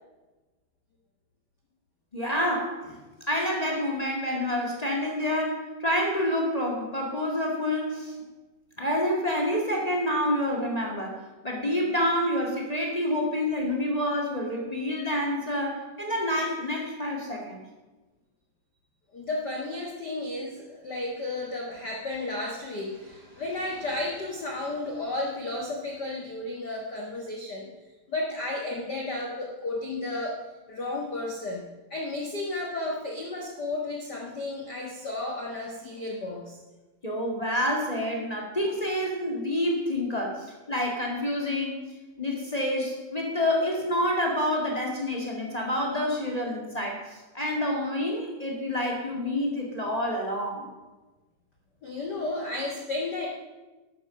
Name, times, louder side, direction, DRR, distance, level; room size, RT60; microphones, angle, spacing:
voice 1, 2.1-3.0 3.3-8.1 8.8-17.6 37.0-50.6, left 1 dB, 20° left, -1 dB, 1.0 m, -28 dB
voice 2, 19.1-27.7 28.1-30.4 30.7-31.6 31.9-36.6 51.8-53.3, left 2 dB, 55° left, 0 dB, 1.1 m, -33 dB
12.5 x 8.9 x 6.4 m, 1.2 s
omnidirectional pair, 4.3 m